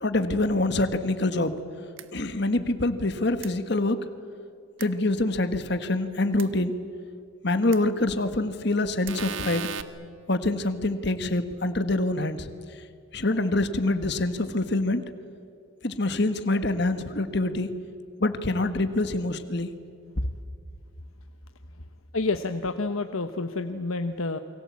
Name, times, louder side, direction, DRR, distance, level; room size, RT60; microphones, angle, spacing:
voice 1, 0.0-1.6 2.1-4.0 4.8-6.7 7.4-9.7 10.3-12.5 13.1-15.0 15.8-17.7 18.2-19.7, left 2 dB, 55° left, 10 dB, 1.5 m, -25 dB
sound 1, 2.0-2.1 3.4-3.5 4.8-4.9 6.4-6.5 7.7-7.8 9.1-9.8, right 6 dB, 70° right, 1.3 m, -34 dB
voice 2, 22.1-24.4, left 3 dB, 90° left, 8 dB, 1.1 m, -29 dB
29.0 x 23.5 x 8.6 m, 2.4 s
head